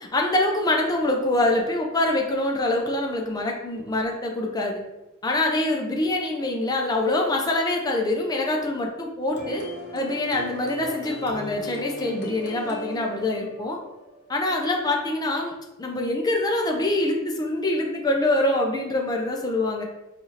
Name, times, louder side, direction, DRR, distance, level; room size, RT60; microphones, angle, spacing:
voice 1, 0.1-4.8 5.2-9.6 9.9-13.8 14.3-15.5 15.8-19.8, left 2 dB, 20° left, 1 dB, 0.5 m, -25 dB
sound 1, 9.3-14.8, equal, 50° left, 0.8 m, -38 dB
4.6 x 2.5 x 2.8 m, 0.99 s
head